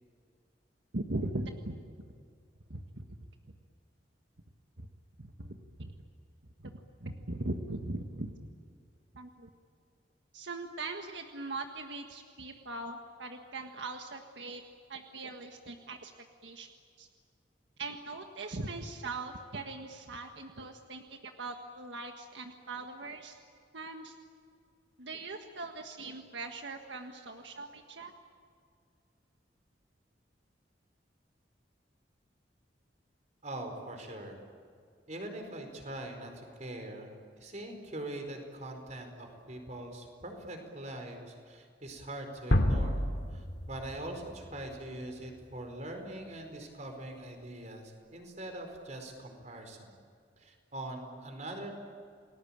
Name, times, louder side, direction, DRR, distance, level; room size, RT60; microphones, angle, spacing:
voice 1, 0.9-2.1 2.7-3.0 4.8-4.9 5.2-5.9 6.6-8.3 9.1-9.5 10.3-14.6 14.9-16.1 16.4-16.7 17.0-17.1 17.8-23.4 23.7-24.2 25.0-28.1, right 2 dB, 80° right, 4 dB, 1.6 m, -40 dB
voice 2, 33.4-34.4 35.1-43.0 43.3-49.9 50.4-51.7, right 1 dB, 40° right, 4 dB, 4.7 m, -42 dB
sound 1, 42.5-45.4, left 1 dB, 70° left, 2.5 m, -31 dB
29.5 x 20.0 x 8.9 m, 2.2 s
head